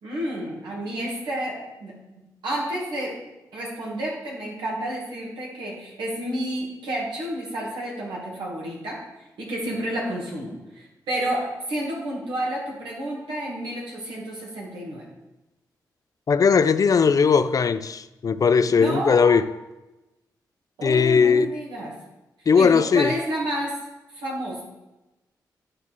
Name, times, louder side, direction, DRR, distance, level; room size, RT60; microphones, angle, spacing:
voice 1, 0.0-2.0 2.4-3.2 3.5-9.0 9.4-15.1 18.8-19.4 20.8-21.9 22.5-23.8 24.1-24.6, right 1 dB, 85° right, 2.1 m, -30 dB
voice 2, 16.3-19.4 20.8-21.5 22.5-23.1, left 5 dB, 50° left, 0.4 m, -18 dB
9.0 x 4.7 x 4.2 m
cardioid pair, 50°, 8 cm